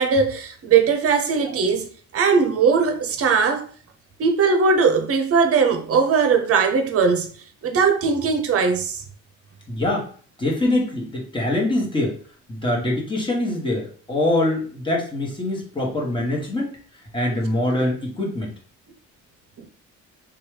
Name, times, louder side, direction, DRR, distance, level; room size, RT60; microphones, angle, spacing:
voice 1, 0.0-3.7 4.2-7.3 7.6-9.0 19.6-19.7, right 5 dB, 50° right, 0.7 m, -19 dB
voice 2, 9.7-10.1 10.4-12.2 12.5-16.8 17.1-18.5, left 1 dB, 15° left, 1.3 m, -24 dB
3.0 x 2.3 x 3.2 m
cardioid pair, 90°, 30 cm